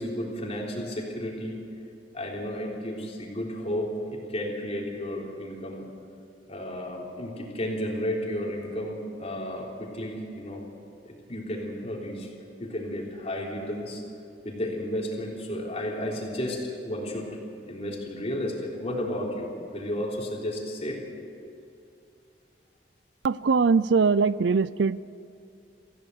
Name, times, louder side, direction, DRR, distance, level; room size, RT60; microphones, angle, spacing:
voice 1, 0.0-1.6 2.1-5.9 6.5-10.6 11.0-12.3 12.6-14.0 14.4-17.3 17.7-21.0, left 1 dB, 35° left, -1 dB, 3.6 m, -32 dB
voice 2, 23.2-25.0, right 4 dB, 85° right, 18 dB, 0.5 m, -22 dB
25.0 x 15.5 x 8.0 m, 2.6 s
head